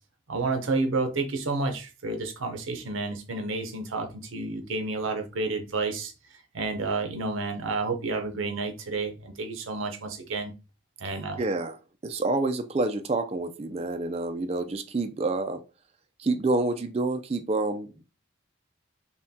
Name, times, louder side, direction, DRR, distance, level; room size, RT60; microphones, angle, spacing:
voice 1, 0.3-6.1 6.5-10.5 11.0-11.4, right 3 dB, 80° right, 0.7 m, -30 dB
voice 2, 11.4-11.8 12.0-15.6 16.2-18.0, right 2 dB, 30° right, 0.4 m, -28 dB
5.6 x 2.2 x 2.7 m
head